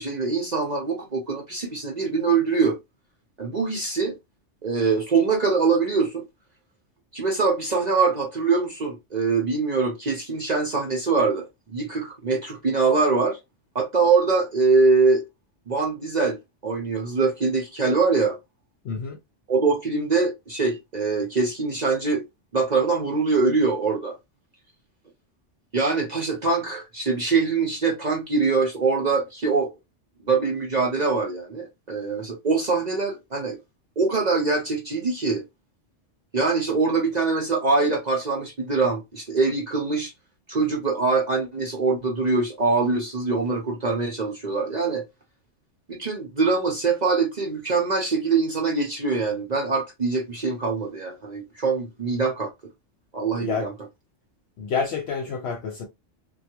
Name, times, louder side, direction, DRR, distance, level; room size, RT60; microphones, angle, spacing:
voice 1, 0.0-2.8 3.4-4.1 4.6-6.2 7.1-11.5 11.7-13.4 13.7-15.2 15.7-16.4 16.6-18.4 19.5-22.2 22.5-24.1 25.7-29.7 30.2-33.6 34.0-35.4 36.3-40.1 40.5-45.0 45.9-52.5 53.1-53.7, right 4 dB, 45° right, 0.7 m, -23 dB
voice 2, 18.8-19.2 53.3-53.7 54.6-55.8, left 5 dB, 65° left, 0.8 m, -28 dB
3.3 x 2.3 x 2.8 m
omnidirectional pair, 1.2 m